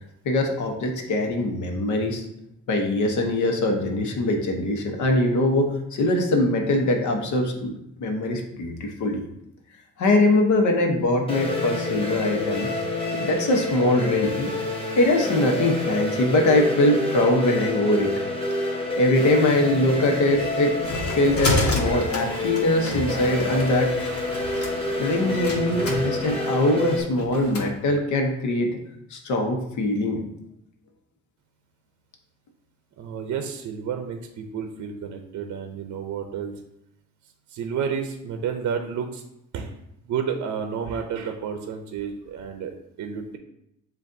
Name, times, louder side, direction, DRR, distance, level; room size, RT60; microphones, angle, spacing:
voice 1, 0.2-2.3 2.7-7.7 8.0-9.2 10.0-12.7 13.1-14.5 15.0-18.1 19.0-20.7 21.2-23.9 25.0-28.7 29.1-30.2, left 1 dB, 75° left, 2 dB, 1.0 m, -22 dB
sound 1, 11.3-27.0, left 2 dB, 20° left, 1.1 m, -28 dB
sound 2, 20.3-27.7, left 1 dB, 50° left, 1.3 m, -30 dB
voice 2, 33.0-36.5 37.5-39.2 39.5-39.7 40.1-43.4, right 7 dB, 70° right, 5 dB, 0.6 m, -31 dB
7.4 x 2.5 x 2.6 m, 0.80 s
cardioid pair, 90°, 30 cm